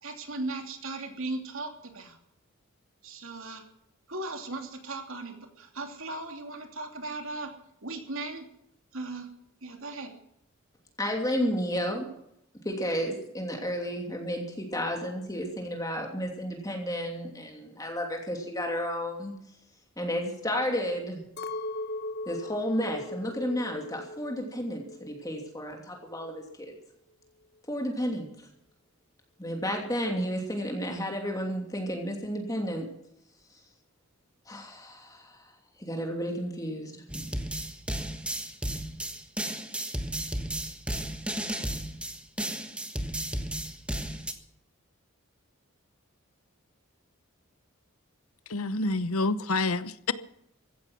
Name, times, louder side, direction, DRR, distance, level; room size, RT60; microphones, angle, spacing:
voice 1, 0.0-2.2 3.0-3.6 4.1-7.5 7.8-8.5 8.9-9.3 9.6-10.1, right 2 dB, 70° right, 3.0 m, -37 dB
voice 2, 11.0-12.1 12.6-19.3 20.0-21.2 22.3-26.4 27.7-28.3 29.4-32.9 34.5-35.5 35.8-37.4, equal, 15° left, 2.8 m, -32 dB
Chink clink, 21.4-25.7 26.0-26.8, left 2 dB, 50° left, 1.1 m, -39 dB
sound 1, 37.1-44.3, right 1 dB, 5° right, 1.4 m, -33 dB
voice 3, 48.5-50.1, left 3 dB, 90° left, 1.0 m, -28 dB
16.0 x 14.5 x 6.0 m
head